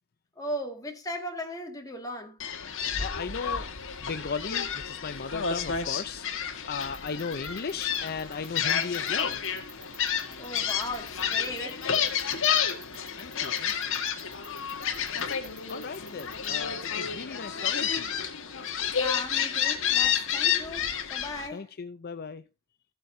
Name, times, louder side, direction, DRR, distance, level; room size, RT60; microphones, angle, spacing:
voice 1, 0.4-2.4 10.4-11.8 19.0-21.7, left 1 dB, 15° left, 2.0 m, -37 dB
Gull seagull, 2.4-21.5, left 8 dB, 60° left, 1.5 m, -30 dB
voice 2, 3.0-3.7 4.0-6.4 6.7-9.4 13.2-14.0 15.7-18.2 21.5-22.4, left 5 dB, 45° left, 0.6 m, -36 dB
sound 1, 6.8-16.5, right 4 dB, 25° right, 2.8 m, -48 dB
14.5 x 8.1 x 2.7 m
head